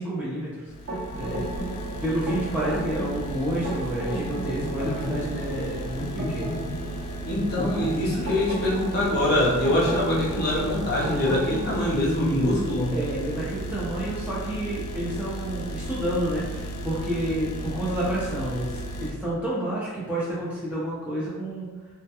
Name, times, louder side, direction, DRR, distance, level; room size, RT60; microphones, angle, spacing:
voice 1, 0.0-6.6 12.9-21.7, right 1 dB, 5° right, -8 dB, 0.4 m, -30 dB
sound 1, 0.7-19.1, right 1 dB, 90° left, 0.3 m, -35 dB
sound 2, 0.9-11.9, equal, 75° right, 0.8 m, -33 dB
voice 2, 7.3-12.9, left 1 dB, 45° left, -5 dB, 0.6 m, -24 dB
2.2 x 2.2 x 2.7 m, 1.2 s
head